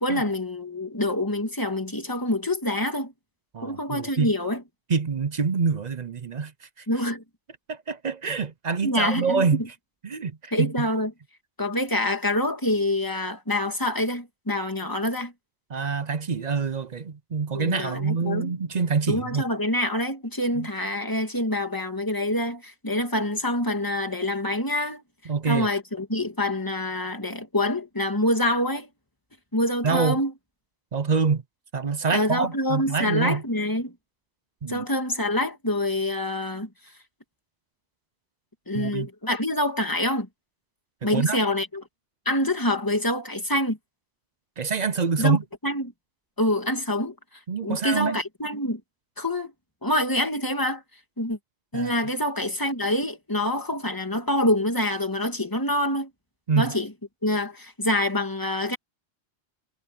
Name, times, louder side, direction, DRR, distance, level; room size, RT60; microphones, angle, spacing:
voice 1, 0.0-3.1 3.6-4.6 6.9-7.2 8.8-9.5 10.5-11.1 11.6-15.3 17.5-18.5 19.1-25.0 25.5-28.9 29.5-30.3 32.1-33.9 34.7-36.7 38.7-40.3 41.0-41.8 42.3-43.8 45.2-45.4 45.6-45.8 46.4-47.1 47.6-48.8 49.2-49.5 49.8-50.8 51.2-51.4 51.7-56.1 56.6-56.9 57.2-58.8, left 1 dB, 15° left, 2.5 m, -26 dB
voice 2, 3.5-4.3 4.9-6.5 6.8-6.9 7.7-9.6 10.0-10.9 15.7-19.4 20.6-20.7 25.3-25.7 29.8-30.2 30.9-31.4 31.7-33.4 34.6-34.9 38.7-39.1 41.0-41.4 44.6-45.4 47.5-48.2 51.7-51.9 56.5-56.7, right 5 dB, 45° right, 0.7 m, -26 dB
omnidirectional pair, 1.2 m